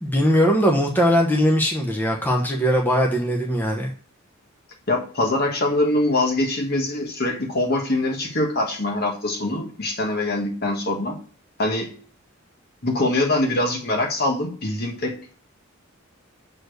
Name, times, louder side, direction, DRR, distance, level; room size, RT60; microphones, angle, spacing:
voice 1, 0.0-3.9, equal, 10° left, 0 dB, 1.0 m, -20 dB
voice 2, 4.9-11.2 11.6-11.9 12.8-15.3, left 2 dB, 50° left, 2 dB, 1.7 m, -23 dB
6.6 x 4.3 x 6.6 m, 0.43 s
head